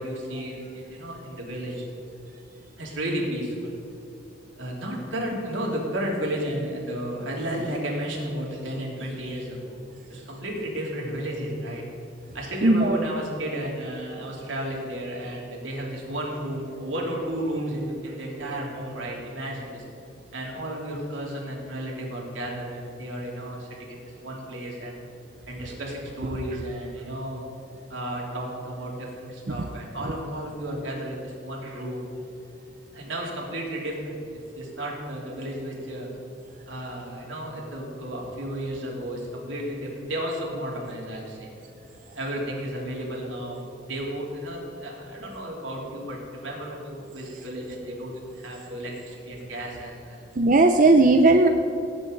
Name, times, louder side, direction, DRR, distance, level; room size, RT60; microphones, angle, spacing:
voice 1, 0.0-1.9 2.8-3.7 4.6-9.8 10.1-11.8 12.3-19.8 20.3-24.9 25.5-27.4 27.9-32.0 32.9-34.2 34.5-36.1 36.7-41.5 42.1-50.2, right 1 dB, 85° right, -2 dB, 3.1 m, -33 dB
voice 2, 12.6-13.0 29.5-29.7 50.4-51.5, right 2 dB, 45° right, 5 dB, 0.5 m, -17 dB
17.0 x 8.8 x 4.0 m, 2.9 s
head